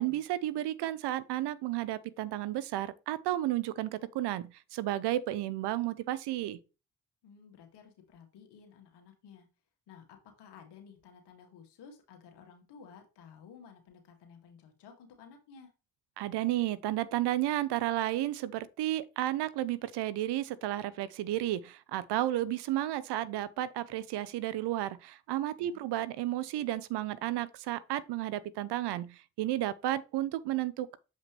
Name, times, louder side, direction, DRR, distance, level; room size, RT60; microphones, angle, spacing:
voice 1, 0.0-6.6 16.2-31.0, right 14 dB, 75° right, 0.7 m, -32 dB
voice 2, 7.2-9.5 9.9-15.7 25.6-25.9, left 6 dB, 80° left, 2.0 m, -54 dB
7.3 x 5.2 x 3.1 m
hypercardioid pair, 45°, 41 cm